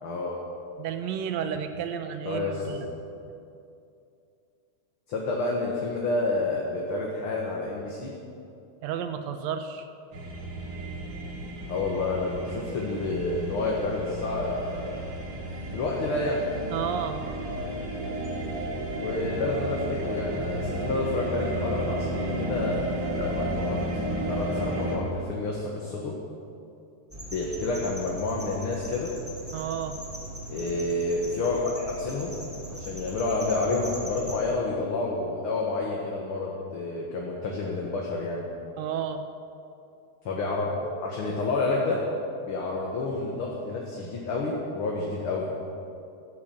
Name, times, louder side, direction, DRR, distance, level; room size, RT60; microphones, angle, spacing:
voice 1, 0.0-0.4 2.2-2.8 5.1-8.1 11.7-15.0 15.7-16.5 18.9-22.8 23.2-23.8 24.3-26.2 27.3-29.1 30.5-32.4 32.8-38.5 40.3-40.7 41.0-42.0 42.5-45.5, left 3 dB, 50° left, -2 dB, 2.2 m, -29 dB
voice 2, 0.8-2.9 8.8-9.9 16.7-17.3 29.5-30.0 38.8-39.2, right 8 dB, 75° right, 8 dB, 2.0 m, -32 dB
sound 1, 10.1-25.0, right 1 dB, 50° right, 3.1 m, -32 dB
sound 2, 27.1-34.4, right 1 dB, 5° right, 2.8 m, -39 dB
15.5 x 12.0 x 7.7 m, 2.6 s
omnidirectional pair, 3.4 m